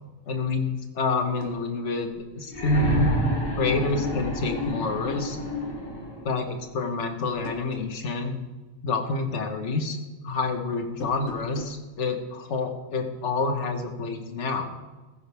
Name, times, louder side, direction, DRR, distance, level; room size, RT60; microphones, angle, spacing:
voice 1, 0.3-3.2 3.6-5.4 6.2-8.3 8.8-10.0 10.2-14.7, left 3 dB, 60° left, 5 dB, 1.6 m, -28 dB
sound 1, 1.2-1.6 3.2-3.5 3.9-4.7 7.2-8.0 10.9-11.8, left 3 dB, 85° left, 1.9 m, -40 dB
sound 2, 2.5-6.3 7.5-7.6, left 1 dB, 40° left, 3.7 m, -28 dB
15.5 x 15.0 x 3.5 m, 1.2 s
omnidirectional pair, 1.4 m